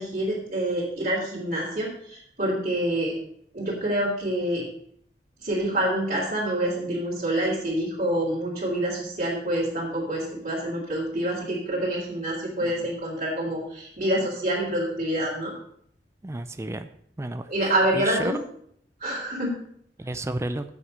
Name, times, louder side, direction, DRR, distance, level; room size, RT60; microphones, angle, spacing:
voice 1, 0.0-3.2 3.5-4.6 5.4-15.5 17.5-18.4 19.0-19.6, right 1 dB, 45° right, -9 dB, 3.1 m, -27 dB
voice 2, 16.2-16.9 17.2-17.5 17.9-18.3 20.0-20.6, right 1 dB, 15° right, 9 dB, 0.4 m, -31 dB
7.9 x 6.4 x 6.6 m, 0.67 s
head